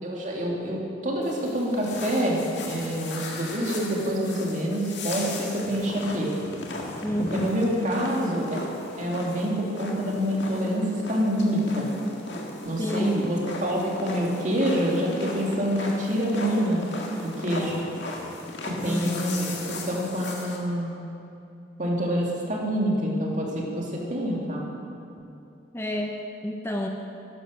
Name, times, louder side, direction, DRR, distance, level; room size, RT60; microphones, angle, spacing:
voice 1, 0.0-6.3 7.3-8.6 9.0-11.9 12.6-16.8 17.2-17.7 18.6-20.9 21.8-24.6, equal, 40° right, -2 dB, 2.3 m, -27 dB
sound 1, 1.2-20.6, left 2 dB, 70° left, 1.9 m, -37 dB
voice 2, 7.0-7.7 12.8-13.2 18.8-19.2 25.7-26.9, equal, 15° left, 2 dB, 0.7 m, -29 dB
12.0 x 11.0 x 6.4 m, 2.7 s
head